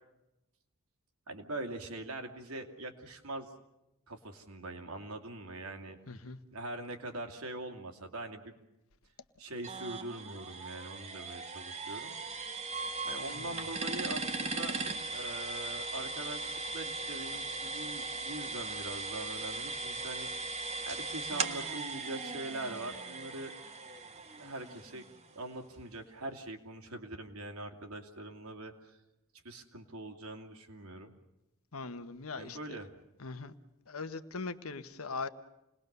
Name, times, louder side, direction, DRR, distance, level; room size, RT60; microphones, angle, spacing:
voice 1, 1.3-3.5 4.1-6.0 6.5-8.6 9.4-12.2 13.0-14.7 15.1-20.3 20.8-23.5 24.4-25.1 25.3-29.0 29.4-31.1 32.4-32.9, right 2 dB, 75° right, 4 dB, 2.7 m, -42 dB
voice 2, 6.1-6.4 13.3-13.6 31.7-32.8 33.2-33.5 33.9-35.3, left 4 dB, 70° left, 10 dB, 1.2 m, -40 dB
sound 1, 9.6-25.3, right 3 dB, 30° right, 1.3 m, -38 dB
28.5 x 20.0 x 6.8 m, 0.93 s
head